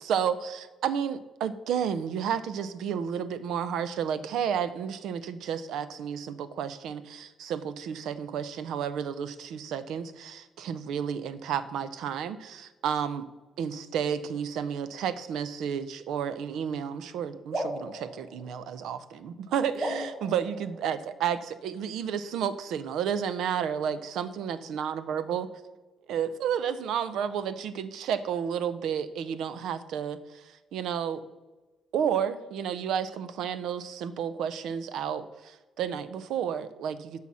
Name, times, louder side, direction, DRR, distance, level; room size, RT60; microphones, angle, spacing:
voice 1, 0.0-13.3 13.6-25.5 26.1-31.2 31.9-37.2, right 8 dB, 80° right, 13 dB, 0.6 m, -31 dB
sound 1, 17.5-19.1 19.7-21.4, right 1 dB, 45° right, 3.5 m, -37 dB
8.2 x 5.7 x 6.2 m, 1.2 s
cardioid pair, 90°, 0 cm